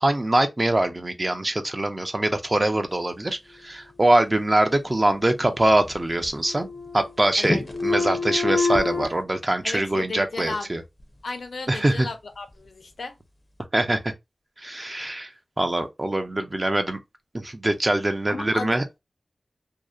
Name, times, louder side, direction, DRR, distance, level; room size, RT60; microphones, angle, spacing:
voice 1, 0.0-6.7 6.9-10.8 11.7-12.1 13.7-14.1 14.6-15.3 15.6-17.0 17.3-19.0, right 1 dB, 30° right, 0.5 m, -23 dB
sound 1, 5.0-5.9 6.2-7.2 7.4-9.0, left 3 dB, 35° left, 0.5 m, -27 dB
voice 2, 9.6-10.7 11.2-13.1 18.3-18.8, left 3 dB, 85° left, 0.6 m, -34 dB
2.7 x 2.0 x 2.3 m
wide cardioid pair, 65°, 0 cm